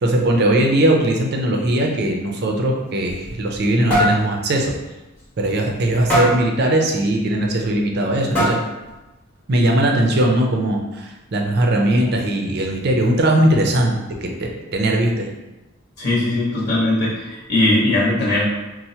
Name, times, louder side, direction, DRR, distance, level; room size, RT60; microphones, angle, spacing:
voice 1, 0.0-4.7 5.4-8.6 9.5-15.3, right 1 dB, 50° right, 1 dB, 0.5 m, -19 dB
sound 1, 2.9-3.6 3.9-4.2 4.6-4.8 5.2-5.3 6.1-6.5 7.6-7.7 8.3-8.8, equal, 5° left, 0.8 m, -20 dB
voice 2, 16.0-18.4, left 2 dB, 50° left, -7 dB, 0.9 m, -19 dB
4.2 x 2.1 x 2.8 m, 1.1 s
head